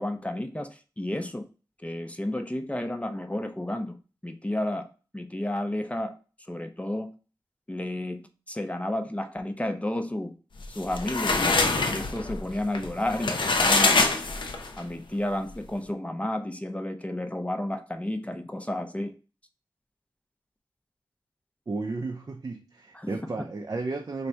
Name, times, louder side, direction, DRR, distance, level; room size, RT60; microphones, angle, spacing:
voice 1, 0.0-1.5 1.8-4.0 4.2-4.9 5.1-6.1 6.5-7.1 7.7-10.3 10.7-11.6 11.9-14.1 14.8-19.1 22.9-23.5, left 1 dB, 15° left, 7 dB, 0.4 m, -31 dB
sound 1, 10.6-14.8, left 3 dB, 75° left, 0.5 m, -24 dB
voice 2, 21.7-24.3, right 3 dB, 45° right, 2 dB, 0.4 m, -33 dB
3.3 x 2.6 x 4.3 m, 0.36 s
wide cardioid pair, 90°, 8 cm